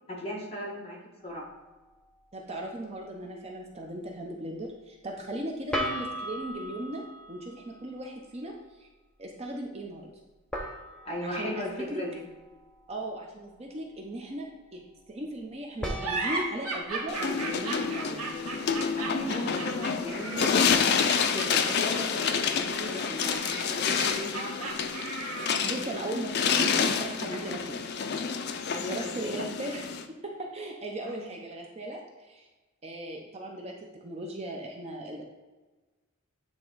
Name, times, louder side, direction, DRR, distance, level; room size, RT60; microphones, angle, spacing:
voice 1, 0.1-1.0 1.2-1.5 11.0-12.2 18.9-24.7 28.7-29.4 31.0-31.3, left 1 dB, 30° left, -3 dB, 1.5 m, -37 dB
sound 1, 1.2-1.4 5.7-8.1 10.5-13.0 15.8-18.9, equal, 5° left, 0.7 m, -39 dB
voice 2, 2.3-7.0 7.3-8.9 9.2-10.1 11.2-12.0 12.9-14.8 15.1-18.3 25.6-27.8 28.9-29.8 30.2-32.5 32.8-35.2, right 1 dB, 30° right, 1 dB, 0.7 m, -37 dB
sound 2, 16.0-25.8, right 3 dB, 85° right, 1.2 m, -36 dB
sound 3, 17.1-30.1, left 6 dB, 50° left, 0.4 m, -28 dB
8.8 x 3.6 x 3.9 m, 1.2 s
head